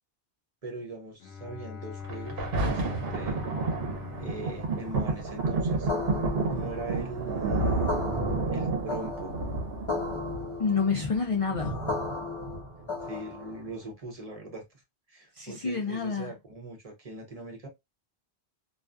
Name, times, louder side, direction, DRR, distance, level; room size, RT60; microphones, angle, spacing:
voice 1, 0.6-3.4 4.2-5.9 6.5-7.8 8.5-9.4 13.0-14.6 15.1-17.7, right 2 dB, 40° right, 0.7 m, -40 dB
Bowed string instrument, 1.2-5.9, left 6 dB, 85° left, 0.9 m, -42 dB
Thunder, 2.0-13.0 13.7-13.8, right 3 dB, 65° right, 0.9 m, -31 dB
sound 1, 5.9-13.7, left 3 dB, 30° left, 0.8 m, -36 dB
voice 2, 10.6-11.8 15.4-16.3, left 5 dB, 60° left, 0.3 m, -28 dB
2.4 x 2.3 x 2.2 m
omnidirectional pair, 1.1 m